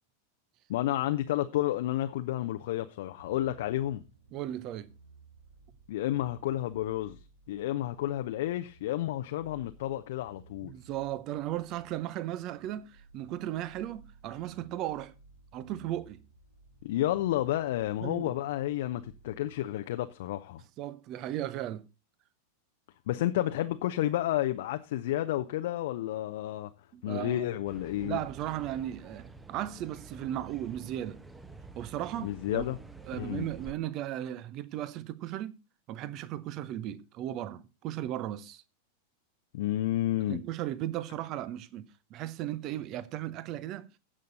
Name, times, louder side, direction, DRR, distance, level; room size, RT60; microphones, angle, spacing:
voice 1, 0.7-4.0 5.9-7.2 7.5-10.7 16.8-20.6 23.1-26.7 27.0-28.2 32.2-32.8 33.2-33.5 39.5-40.4, left 14 dB, 55° left, 0.7 m, -31 dB
sound 1, 3.2-19.7, right 4 dB, 75° right, 1.8 m, -58 dB
voice 2, 4.3-4.9 10.6-15.1 15.5-16.2 18.0-18.3 20.8-21.9 26.9-27.5 28.0-31.2 31.8-32.6 33.1-35.6 35.9-38.6 40.3-43.9, right 13 dB, 40° right, 0.9 m, -36 dB
sound 2, 27.7-33.7, right 4 dB, 10° right, 1.0 m, -48 dB
16.0 x 6.6 x 4.0 m
figure-of-eight pair, 90°, 0 cm